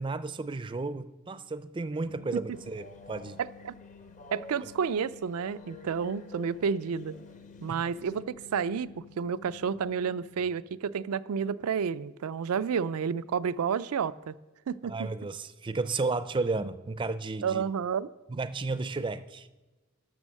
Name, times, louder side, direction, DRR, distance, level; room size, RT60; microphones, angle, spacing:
voice 1, 0.0-3.4 7.7-7.8 14.9-17.6 18.3-19.5, right 3 dB, 20° right, 13 dB, 0.4 m, -33 dB
sound 1, 2.0-10.4, left 5 dB, 75° left, 1.3 m, -53 dB
Train, 2.5-8.2, left 3 dB, 35° left, 0.6 m, -51 dB
voice 2, 3.4-3.7 4.3-7.1 7.6-14.3 14.7-15.1 17.4-18.1, right 6 dB, 90° right, 15 dB, 0.4 m, -30 dB
12.5 x 6.2 x 6.4 m, 1.1 s
head